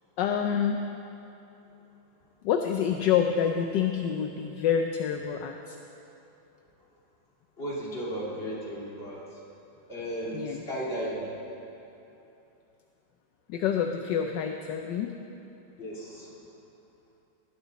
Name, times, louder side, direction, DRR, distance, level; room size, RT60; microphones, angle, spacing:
voice 1, 0.2-0.8 2.4-5.8 10.3-10.6 13.5-15.1, left 8 dB, 75° left, 4 dB, 1.3 m, -27 dB
voice 2, 7.6-9.4 9.9-11.3 15.8-16.3, equal, 30° left, -6 dB, 2.9 m, -35 dB
18.5 x 12.5 x 4.1 m, 2.9 s
omnidirectional pair, 2.1 m